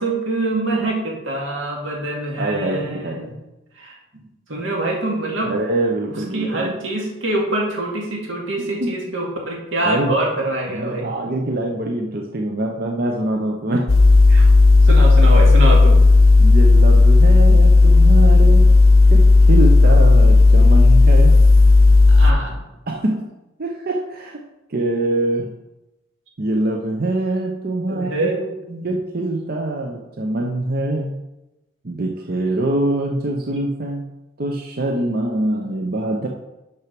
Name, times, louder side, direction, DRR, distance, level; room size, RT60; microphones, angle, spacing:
voice 1, 0.0-3.3 3.8-3.9 4.5-5.5 6.3-11.1 14.3-14.5 14.8-16.0 22.1-22.6 27.9-28.9, right 1 dB, 70° right, -1 dB, 2.2 m, -24 dB
voice 2, 2.4-3.4 5.4-6.7 8.8-9.0 9.8-10.1 10.7-13.9 16.4-18.7 19.1-21.4 22.9-23.3 23.6-24.4 24.7-25.5 26.4-28.3 28.8-31.2 31.8-34.0 34.4-36.3, right 2 dB, 45° right, 1 dB, 0.7 m, -24 dB
sound 1, 13.9-22.3, left 3 dB, 85° left, 0.8 m, -11 dB
6.4 x 6.0 x 5.9 m, 0.98 s
head